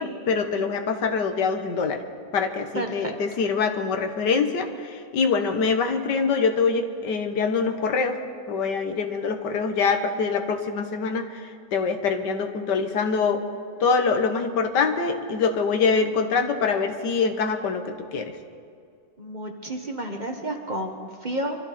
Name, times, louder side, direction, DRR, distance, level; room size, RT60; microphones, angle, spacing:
voice 1, 0.0-2.0 2.3-8.2 8.5-13.4 13.8-18.3, left 5 dB, 85° left, 6 dB, 1.8 m, -24 dB
voice 2, 2.7-3.2 19.2-21.6, right 1 dB, 30° right, 3 dB, 1.2 m, -31 dB
25.0 x 13.5 x 4.3 m, 2.3 s
omnidirectional pair, 1.8 m